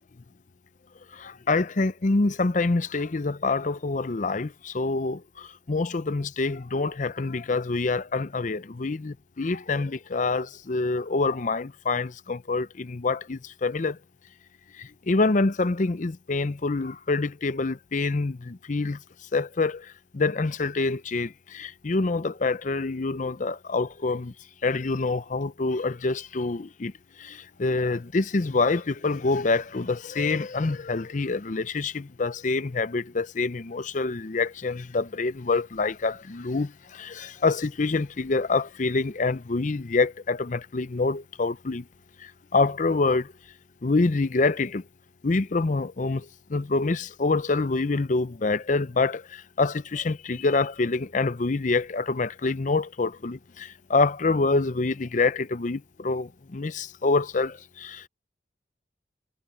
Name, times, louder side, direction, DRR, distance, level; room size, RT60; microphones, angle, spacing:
voice 1, 1.1-14.0 14.8-19.0 19.3-24.3 24.6-26.9 27.2-41.8 42.2-43.3 43.8-44.8 45.2-58.1, left 3 dB, 40° left, 0.6 m, -26 dB
head